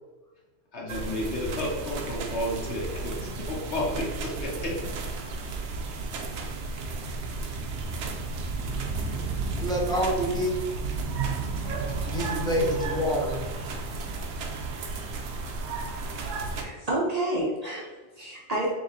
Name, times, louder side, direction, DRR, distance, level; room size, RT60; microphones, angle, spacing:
voice 1, 0.7-4.9, left 1 dB, 80° left, -3 dB, 1.4 m, -32 dB
sound 1, 0.9-16.6, right 3 dB, 80° right, 0.9 m, -33 dB
voice 2, 9.6-10.5 12.0-13.4, equal, 5° left, -5 dB, 1.1 m, -27 dB
voice 3, 16.3-18.7, right 1 dB, 40° right, -4 dB, 0.7 m, -30 dB
3.6 x 2.9 x 4.0 m, 1.2 s
omnidirectional pair, 1.2 m